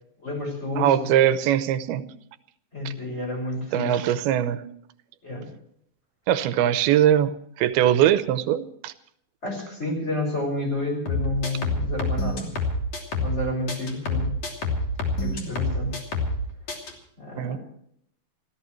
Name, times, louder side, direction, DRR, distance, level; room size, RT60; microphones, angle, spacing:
voice 1, 0.2-1.1 2.7-4.1 5.2-5.5 9.4-12.5 13.2-14.3 15.2-16.0 17.2-17.6, left 2 dB, 15° left, 2 dB, 6.0 m, -30 dB
voice 2, 0.8-2.1 2.9-3.0 3.7-4.6 6.3-8.9 17.4-17.6, right 11 dB, 85° right, 12 dB, 2.7 m, -21 dB
sound 1, 11.1-13.4 13.7-16.4 16.7-16.9, left 2 dB, 45° left, 3.8 m, -27 dB
29.5 x 14.5 x 3.1 m, 0.68 s
omnidirectional pair, 4.3 m